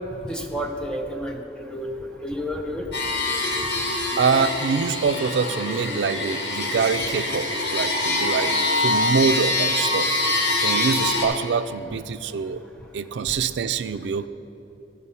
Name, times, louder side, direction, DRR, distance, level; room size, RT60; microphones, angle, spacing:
voice 1, 0.3-1.9 2.2-2.9, equal, 5° left, 2 dB, 0.6 m, -30 dB
sound 1, 2.9-11.3, left 2 dB, 85° left, 1.7 m, -24 dB
voice 2, 4.2-8.6 8.8-10.1 10.6-12.6 12.9-14.3, right 5 dB, 80° right, 13 dB, 0.4 m, -25 dB
13.0 x 5.4 x 5.6 m, 2.9 s
head